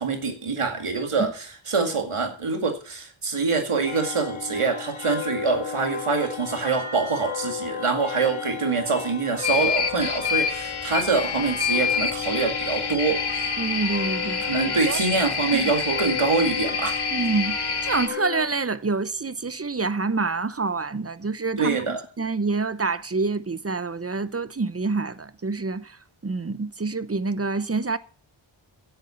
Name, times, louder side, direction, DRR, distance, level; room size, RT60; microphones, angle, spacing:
voice 1, 0.0-13.2 14.4-17.0 21.6-22.0, right 4 dB, 90° right, 2.2 m, -25 dB
sound 1, 3.8-18.5, left 7 dB, 75° left, 1.6 m, -34 dB
sound 2, 9.4-18.1, left 5 dB, 50° left, 1.5 m, -27 dB
voice 2, 13.6-14.4 14.9-15.0 15.5-15.7 17.1-28.0, right 3 dB, 30° right, 0.7 m, -27 dB
10.5 x 8.2 x 6.9 m
wide cardioid pair, 40°, 49 cm